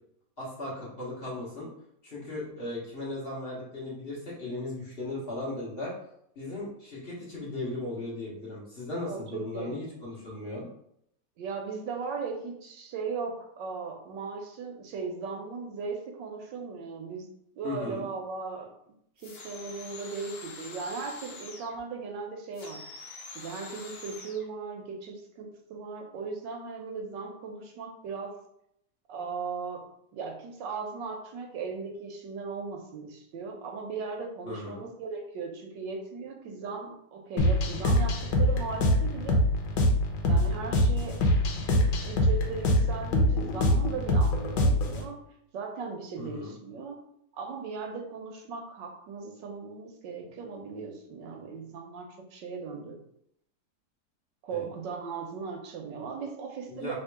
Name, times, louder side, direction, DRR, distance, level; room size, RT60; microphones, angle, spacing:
voice 1, 0.4-1.7 2.0-5.9 6.3-10.7 17.6-18.1 34.4-34.9 46.2-46.5 54.5-54.7 56.7-56.9, left 2 dB, 35° left, -6 dB, 1.4 m, -37 dB
voice 2, 9.0-9.8 11.4-17.3 17.6-18.7 19.2-22.8 23.3-28.4 29.1-29.8 30.1-39.4 40.2-41.2 42.0-45.2 45.5-47.0 47.3-53.0 54.4-56.9, right 5 dB, 80° right, 2 dB, 1.4 m, -37 dB
sound 1, 19.2-21.8 22.5-24.5, left 3 dB, 50° left, 0.7 m, -45 dB
sound 2, 37.4-45.0, left 1 dB, 80° left, 1.4 m, -24 dB
3.6 x 2.8 x 4.6 m, 0.73 s
omnidirectional pair, 1.9 m